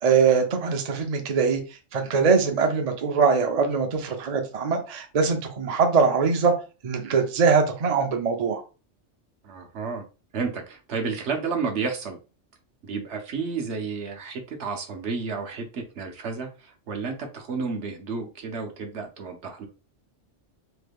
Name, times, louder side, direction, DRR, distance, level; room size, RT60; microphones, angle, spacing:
voice 1, 0.0-1.6 1.9-6.5 6.8-8.6, right 5 dB, 45° right, 0.5 m, -22 dB
voice 2, 9.4-10.0 10.3-12.2 12.8-19.7, right 5 dB, 70° right, 1.0 m, -31 dB
3.1 x 2.2 x 3.4 m
omnidirectional pair, 1.3 m